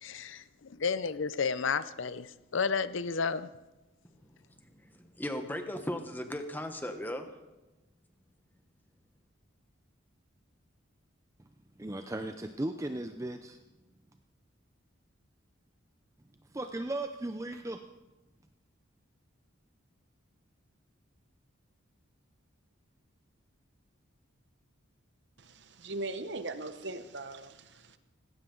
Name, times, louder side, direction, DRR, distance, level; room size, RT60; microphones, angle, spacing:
voice 1, 0.0-0.4 0.7-3.5, left 5 dB, 65° left, 0.6 m, -31 dB
voice 2, 5.0-7.2, left 1 dB, 10° left, 1.1 m, -36 dB
voice 3, 11.8-13.6 16.5-17.8, right 1 dB, 15° right, 0.5 m, -36 dB
voice 4, 25.4-28.0, right 2 dB, 55° right, 0.9 m, -40 dB
18.5 x 16.5 x 3.9 m
head